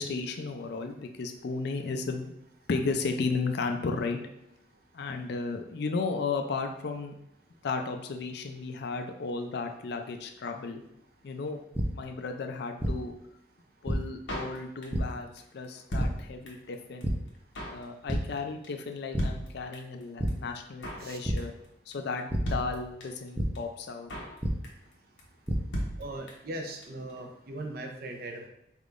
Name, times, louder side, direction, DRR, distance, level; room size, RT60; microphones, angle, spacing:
voice 1, 0.0-2.3 2.7-4.2 4.9-7.1 7.6-10.8 11.2-11.6 11.9-13.1 13.8-17.2 17.7-21.5 21.9-24.1, left 4 dB, 65° left, 5 dB, 0.4 m, -34 dB
sound 1, 11.7-11.8 12.8-12.9 13.9-14.0 14.9-15.0 16.0-16.1 17.0-17.1 17.6-17.8 18.1-18.2 19.1-19.2 20.2-20.3 21.2-21.3 22.3-22.4 23.4-23.5 24.4-24.5 25.2-25.6, right 1 dB, 10° right, 0.5 m, -28 dB
Drum kit, 14.3-15.1 15.4-15.5 15.6-16.7 17.0-17.1 17.3-17.8 18.1-18.4 18.6-18.7 18.9-19.0 19.2-20.0 20.3-20.4 20.6-21.1 21.4-21.7 21.9-22.0 22.2-22.3 22.5-23.3 23.6-23.7 23.8-24.4 24.6-24.9 25.2-25.3 25.5-25.6 25.7-26.6 26.8-26.9 27.1-27.2, equal, 85° left, 1.0 m, -36 dB
voice 2, 26.0-28.5, right 1 dB, 55° right, 3 dB, 0.6 m, -39 dB
4.4 x 3.5 x 2.5 m, 0.81 s
head